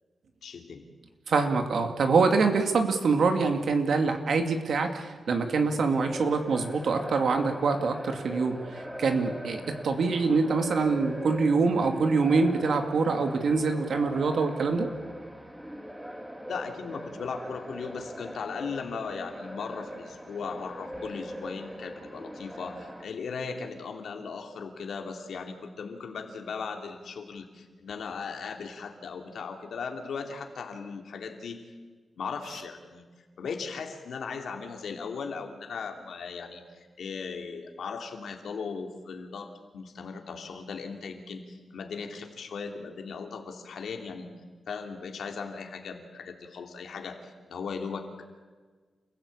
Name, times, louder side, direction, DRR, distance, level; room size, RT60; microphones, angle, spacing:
voice 1, 0.4-0.9 16.5-31.6 32.2-33.0 33.4-44.3 44.7-48.2, left 5 dB, 85° left, 4 dB, 3.0 m, -38 dB
voice 2, 1.3-14.9, right 4 dB, 75° right, 6 dB, 2.5 m, -25 dB
sound 1, 5.9-23.1, equal, 10° right, 2.8 m, -41 dB
28.5 x 16.0 x 8.7 m, 1.4 s
cardioid pair, 90°, 0 cm